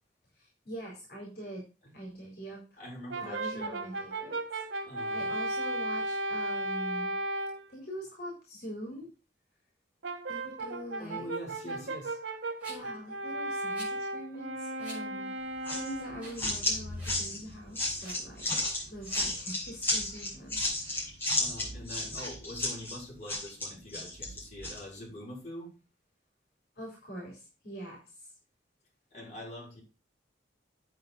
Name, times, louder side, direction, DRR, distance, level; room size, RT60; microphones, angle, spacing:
voice 1, 0.4-1.6 1.9-2.8 3.2-4.6 5.1-7.1 7.7-9.1 10.3-11.3 11.6-11.9 12.7-15.4 15.7-18.5 18.9-20.6 20.8-21.1 26.8-28.3, equal, 55° left, -1 dB, 4.2 m, -43 dB
voice 2, 2.8-3.9 4.8-5.3 11.0-12.2 12.8-12.9 21.4-25.7 29.1-29.8, left 1 dB, 40° left, -4 dB, 5.5 m, -44 dB
Brass instrument, 3.1-7.7 10.0-16.4, right 1 dB, 80° right, 1.5 m, -35 dB
Rattle, 12.6-13.0 13.7-14.0 14.8-15.0 15.5-15.6 16.1-16.5 16.7-17.2 17.9-18.2 19.0-19.3, right 1 dB, 10° right, 6.8 m, -47 dB
sound 1, 15.6-24.8, left 1 dB, 10° left, 6.6 m, -33 dB
9.0 x 8.3 x 4.0 m, 0.32 s
head